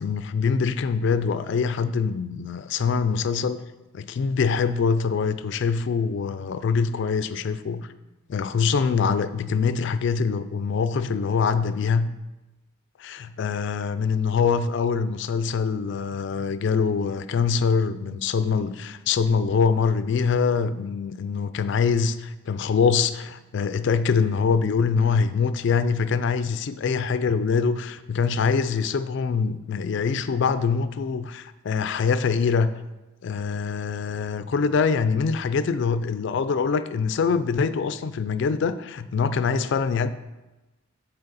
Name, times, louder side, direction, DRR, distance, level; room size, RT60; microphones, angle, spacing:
voice 1, 0.0-3.6 3.9-7.9 8.3-12.1 13.0-32.7 33.2-40.1, left 5 dB, 60° left, 0.3 m, -24 dB
7.8 x 4.5 x 4.1 m
head